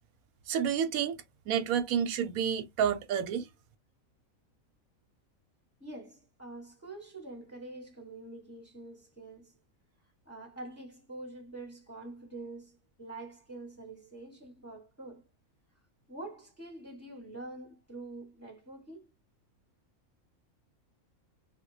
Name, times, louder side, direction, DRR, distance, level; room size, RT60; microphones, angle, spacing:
voice 1, 0.5-3.5, right 8 dB, 85° right, 1.1 m, -30 dB
voice 2, 5.8-9.6 10.2-15.2 16.1-19.1, right 2 dB, 10° left, 0.9 m, -46 dB
3.3 x 2.2 x 3.1 m
omnidirectional pair, 1.5 m